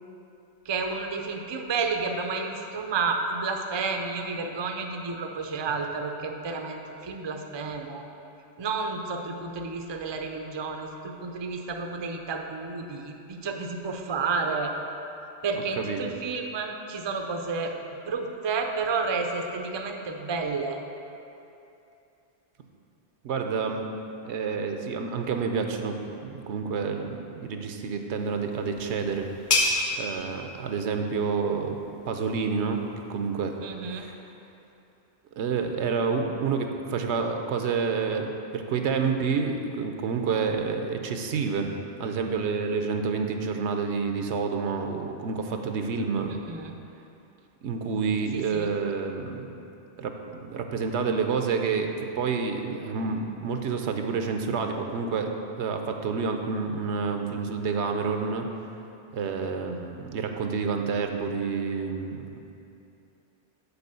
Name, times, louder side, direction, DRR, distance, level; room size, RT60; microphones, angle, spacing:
voice 1, 0.7-8.0 8.6-14.7 15.4-17.7 18.0-20.8 33.6-34.1 46.3-46.7 48.3-48.7 59.6-59.9, right 4 dB, 40° right, 3 dB, 0.4 m, -31 dB
voice 2, 23.2-23.9 24.2-26.0 26.2-29.3 30.0-31.8 32.1-33.6 33.9-34.1 35.4-41.7 42.0-46.3 47.6-49.5 50.0-58.5 59.1-62.3, right 5 dB, 80° right, 5 dB, 0.9 m, -29 dB
sound 1, 28.2-33.6, left 2 dB, 45° left, 1.1 m, -32 dB
6.8 x 4.8 x 6.7 m, 2.8 s
omnidirectional pair, 1.2 m